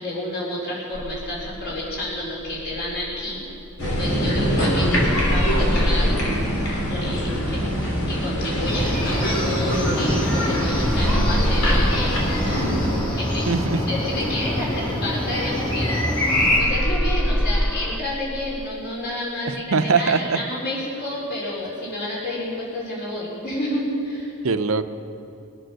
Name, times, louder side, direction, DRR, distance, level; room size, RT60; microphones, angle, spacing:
voice 1, 0.0-3.4 4.0-6.2 6.9-7.6 8.1-12.7 13.2-13.5 13.9-24.3, left 1 dB, 50° left, -5 dB, 4.5 m, -30 dB
sound 1, 0.9-4.4 4.7-10.2 10.5-16.0 16.3-18.7, equal, 5° left, 0.3 m, -27 dB
sound 2, 3.8-13.0, equal, 85° left, 3.7 m, -24 dB
sound 3, 8.6-16.6, left 1 dB, 25° left, 4.0 m, -25 dB
voice 2, 13.5-13.8 19.4-20.4 24.4-24.8, right 4 dB, 70° right, 10 dB, 0.7 m, -21 dB
22.0 x 9.2 x 6.5 m, 2.6 s
head